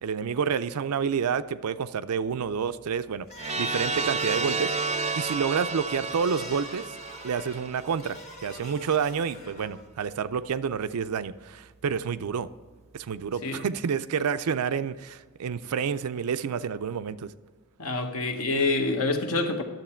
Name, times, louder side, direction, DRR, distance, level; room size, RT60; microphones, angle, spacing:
voice 1, 0.0-3.3 3.6-4.7 5.2-6.8 7.2-12.5 12.9-17.3, right 6 dB, 85° right, 0.4 m, -29 dB
sound 1, 3.2-9.9, left 2 dB, 30° left, 1.3 m, -45 dB
sound 2, 3.4-8.2, right 4 dB, 30° right, 0.5 m, -31 dB
voice 2, 17.8-19.6, left 3 dB, 70° left, 1.1 m, -26 dB
10.5 x 7.5 x 4.4 m
head